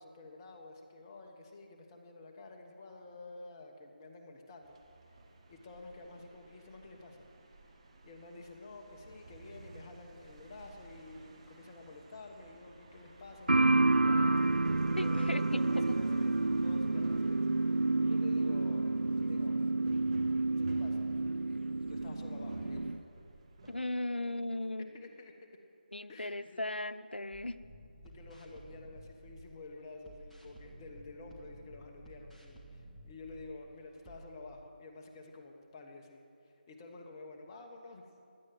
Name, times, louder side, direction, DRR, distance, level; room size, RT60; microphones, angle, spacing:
voice 1, 0.0-4.8 5.5-7.3 8.0-18.9 19.2-19.6 20.5-21.0 21.9-22.9 24.9-25.3 26.1-26.6 28.0-38.3, left 2 dB, 20° left, 2 dB, 1.2 m, -50 dB
sound 1, 4.6-23.8, right 2 dB, 35° right, 1.5 m, -54 dB
sound 2, 13.5-23.0, right 2 dB, 85° right, 0.4 m, -29 dB
voice 2, 15.0-15.4 15.9-16.0 23.7-25.0 25.9-27.6, left 1 dB, 90° left, 12 dB, 0.7 m, -37 dB
sound 3, 27.3-29.6 30.0-33.6 34.0-34.2, right 1 dB, ahead, 1.1 m, -53 dB
16.5 x 11.5 x 7.7 m, 2.5 s
figure-of-eight pair, 160°, 5 cm